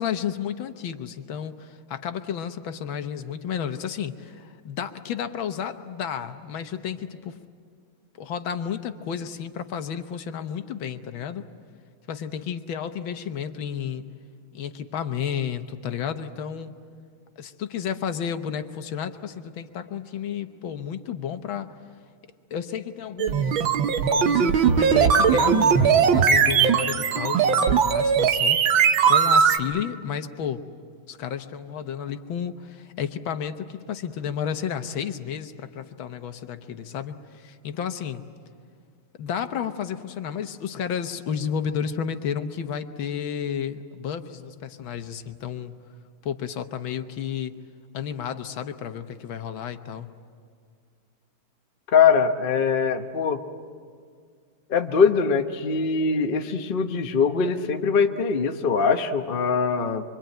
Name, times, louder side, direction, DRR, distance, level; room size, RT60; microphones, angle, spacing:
voice 1, 0.0-7.4 8.2-11.5 12.1-14.0 14.5-16.7 17.4-21.7 22.5-23.7 24.1-28.6 29.1-30.6 31.1-38.2 39.2-45.8 46.2-47.6 47.9-50.1, left 8 dB, 70° left, 9 dB, 1.8 m, -32 dB
sound 1, 23.2-29.6, right 7 dB, 70° right, 1.8 m, -19 dB
voice 2, 51.9-53.4 54.7-60.0, left 5 dB, 40° left, 5 dB, 0.8 m, -22 dB
25.5 x 24.5 x 9.1 m, 2.1 s
omnidirectional pair, 2.3 m